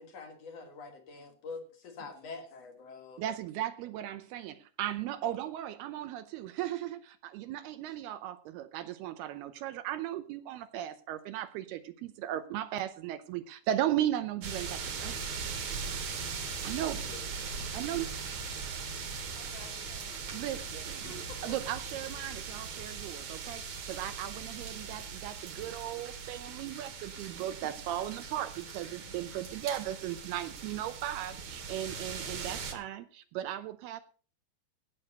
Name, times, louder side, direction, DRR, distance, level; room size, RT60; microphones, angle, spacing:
voice 1, 0.0-3.2, left 4 dB, 50° left, 5 dB, 2.2 m, -45 dB
voice 2, 3.2-15.8 16.6-17.2 17.7-18.1 20.3-21.0 21.4-34.0, right 12 dB, 80° right, 12 dB, 2.5 m, -36 dB
sound 1, 14.4-32.7, right 5 dB, 50° right, 2.6 m, -40 dB
voice 3, 16.3-16.9 17.1-17.2 19.3-20.7 21.0-21.6, left 3 dB, 75° left, 5 dB, 5.2 m, -52 dB
16.5 x 6.3 x 6.4 m, 0.40 s
omnidirectional pair, 4.9 m